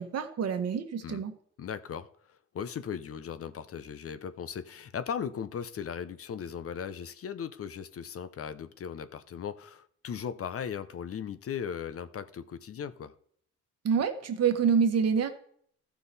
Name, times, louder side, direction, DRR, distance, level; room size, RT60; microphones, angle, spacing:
voice 1, 0.0-1.3 13.8-15.3, right 6 dB, 55° right, 1.4 m, -27 dB
voice 2, 1.6-13.1, left 7 dB, 50° left, 0.7 m, -38 dB
14.0 x 5.9 x 4.1 m
cardioid pair, 90°, 30 cm